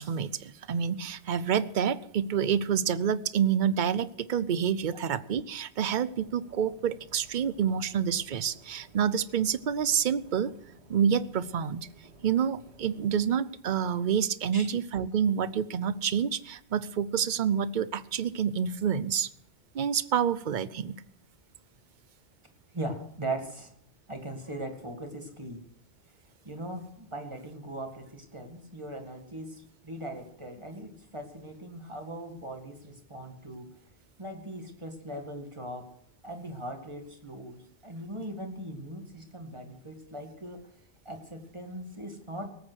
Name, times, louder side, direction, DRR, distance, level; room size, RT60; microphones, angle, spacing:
voice 1, 0.0-10.5 10.9-11.9 12.2-19.3 19.7-21.0, right 8 dB, 50° right, 16 dB, 0.7 m, -28 dB
sound 1, 6.0-13.4, right 2 dB, 80° right, 2.5 m, -56 dB
voice 2, 22.7-23.7 24.1-25.6 26.4-33.7 34.2-35.9 36.2-40.7 41.1-42.5, right 1 dB, 25° right, 4 dB, 2.1 m, -39 dB
19.0 x 8.9 x 6.3 m, 0.70 s
omnidirectional pair, 1.1 m